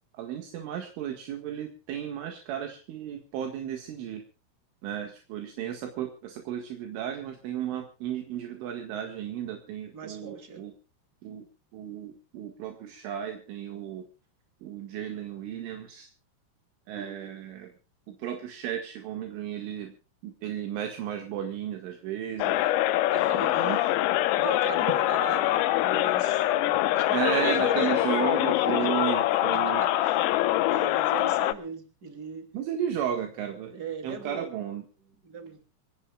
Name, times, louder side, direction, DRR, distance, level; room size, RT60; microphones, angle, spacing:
voice 1, 0.2-4.2 4.8-10.7 11.2-11.5 11.7-14.1 14.6-16.1 16.9-17.7 18.1-19.9 20.2-22.7 23.5-23.9 27.1-29.8 32.5-33.8 34.0-34.8, right 9 dB, 70° right, 4 dB, 4.2 m, -34 dB
voice 2, 9.9-10.6 23.1-23.8 24.4-28.1 28.7-28.9 29.5-30.2 30.7-32.5 33.7-34.5 35.2-35.6, right 3 dB, 25° right, 6 dB, 2.2 m, -38 dB
sound 1, 22.4-31.5, left 15 dB, 80° left, 3.6 m, -24 dB
24.5 x 18.0 x 2.4 m, 0.35 s
omnidirectional pair, 5.9 m